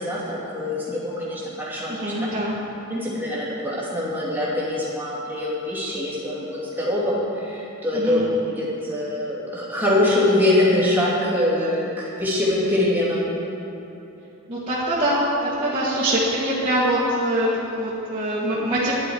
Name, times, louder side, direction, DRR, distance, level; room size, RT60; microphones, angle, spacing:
voice 1, 0.0-2.0 2.9-8.2 8.5-13.3, left 1 dB, 10° right, -8 dB, 2.6 m, -23 dB
voice 2, 1.9-2.6 7.9-8.2 14.5-18.9, right 1 dB, 25° right, -11 dB, 2.0 m, -23 dB
13.5 x 10.5 x 4.7 m, 2.9 s
head